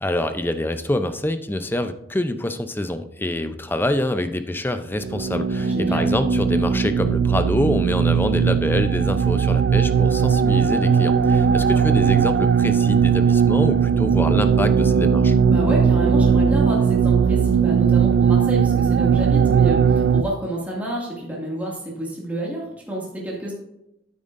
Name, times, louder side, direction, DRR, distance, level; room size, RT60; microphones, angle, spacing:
voice 1, 0.0-15.3, left 1 dB, 10° left, 9 dB, 0.5 m, -25 dB
sound 1, 5.0-20.2, right 6 dB, 80° right, 0.4 m, -18 dB
voice 2, 5.6-6.1 11.2-11.9 15.4-23.5, right 1 dB, 10° right, -5 dB, 2.1 m, -29 dB
9.3 x 8.8 x 2.6 m, 0.84 s
head